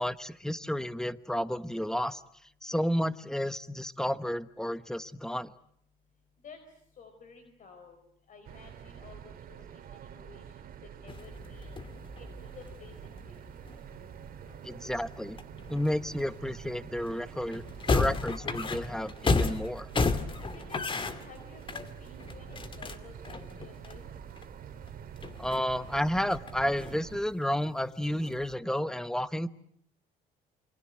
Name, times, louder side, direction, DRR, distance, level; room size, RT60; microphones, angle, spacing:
voice 1, 0.0-2.2 2.6-5.5 14.6-15.4 15.7-17.6 17.9-19.9 25.4-29.5, equal, 5° left, 14 dB, 1.1 m, -31 dB
voice 2, 6.9-8.0 8.3-10.7 11.0-11.7 12.2-13.5 20.4-24.0, left 5 dB, 50° left, 6 dB, 4.7 m, -53 dB
sound 1, 8.4-27.2, right 9 dB, 60° right, 2.5 m, -47 dB
sound 2, 11.1-16.5 17.1-17.2 17.4-24.4 24.8-24.9 25.2-27.3 27.6-28.5, left 3 dB, 30° left, 2.3 m, -34 dB
28.0 x 24.5 x 7.8 m, 0.67 s
cardioid pair, 110°, 17 cm